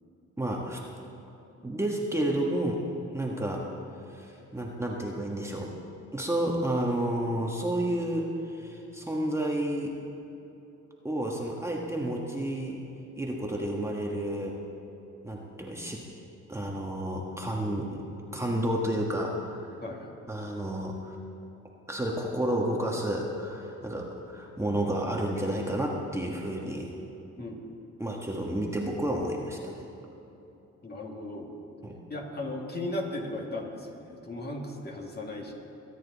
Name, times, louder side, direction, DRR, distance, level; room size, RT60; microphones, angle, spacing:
voice 1, 0.4-0.8 1.6-2.8 3.1-3.6 4.1-5.7 6.1-9.9 11.0-12.8 13.2-14.6 15.2-16.0 16.5-18.0 18.3-19.8 20.3-21.2 21.9-26.9 27.4-27.5 28.0-29.7 31.8-32.0, right 1 dB, 10° right, -2 dB, 1.5 m, -31 dB
voice 2, 19.8-20.2 27.4-27.6 30.8-31.5 32.1-35.5, left 1 dB, 35° left, -1 dB, 2.4 m, -36 dB
23.0 x 9.4 x 4.1 m, 3.0 s
cardioid pair, 90°, 30 cm